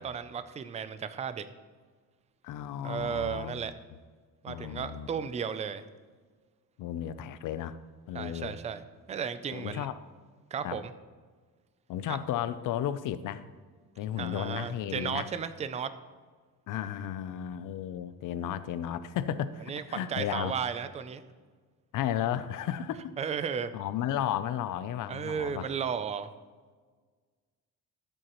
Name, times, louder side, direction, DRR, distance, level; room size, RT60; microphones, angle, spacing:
voice 1, 0.0-1.4 2.8-3.7 4.4-5.8 8.1-8.8 9.1-9.9 10.5-10.9 12.1-12.2 14.2-15.9 19.7-21.2 23.2-23.7 25.1-26.3, right 7 dB, 20° right, 12 dB, 0.4 m, -34 dB
voice 2, 2.4-3.7 4.5-5.1 6.8-7.8 8.1-8.6 9.5-10.0 10.6-10.8 11.9-13.5 14.0-15.3 16.7-20.5 21.9-23.1 23.7-25.7, left 10 dB, 60° left, 14 dB, 0.5 m, -34 dB
13.5 x 7.9 x 3.0 m, 1.5 s
cardioid pair, 145°, 37 cm